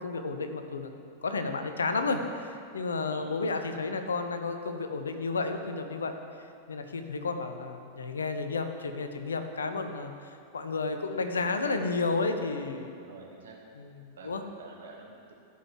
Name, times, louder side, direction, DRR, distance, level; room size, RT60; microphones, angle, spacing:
voice 1, 0.0-6.2 6.7-10.1 10.5-13.0 13.8-14.4, left 3 dB, 70° left, 7 dB, 0.9 m, -32 dB
voice 2, 13.0-13.6 14.1-14.3 14.6-15.3, right 4 dB, 65° right, -2 dB, 2.3 m, -49 dB
15.0 x 5.7 x 7.5 m, 2.5 s
figure-of-eight pair, 90°, 0 cm